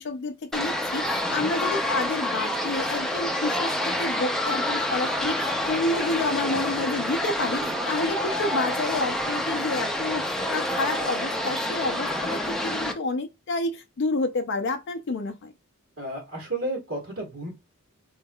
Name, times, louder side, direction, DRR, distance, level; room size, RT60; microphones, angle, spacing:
voice 1, 0.0-3.7 4.0-10.2 10.5-15.5, left 2 dB, 55° left, 0.5 m, -29 dB
sound 1, 0.5-12.9, left 1 dB, ahead, 0.5 m, -28 dB
voice 2, 16.0-17.5, right 2 dB, 65° right, 1.5 m, -32 dB
4.2 x 3.5 x 2.2 m
head